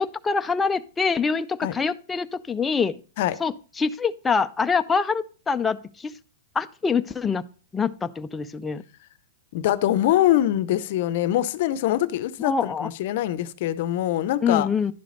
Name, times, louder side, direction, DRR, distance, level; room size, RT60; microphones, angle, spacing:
voice 1, 0.0-3.0 3.4-6.1 6.6-7.4 7.7-8.8 12.4-12.9 14.4-14.9, left 5 dB, 10° left, 0.3 m, -25 dB
voice 2, 9.5-14.7, left 13 dB, 45° left, 0.6 m, -23 dB
11.0 x 5.0 x 3.8 m
supercardioid pair, 165°, 0 cm